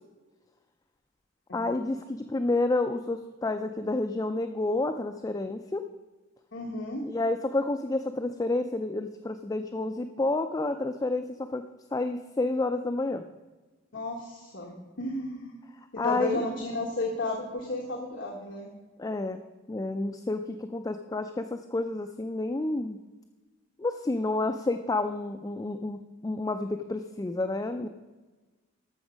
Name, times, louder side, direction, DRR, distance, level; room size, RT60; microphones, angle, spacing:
voice 1, 1.5-5.8 7.1-11.6 11.9-13.2 16.0-16.4 19.0-19.4 19.7-23.0 23.8-27.9, left 2 dB, 15° left, 7 dB, 0.3 m, -30 dB
voice 2, 6.5-7.1 13.9-15.6 15.9-18.7, left 2 dB, 60° left, 0 dB, 1.2 m, -33 dB
13.5 x 6.1 x 5.0 m, 1.2 s
head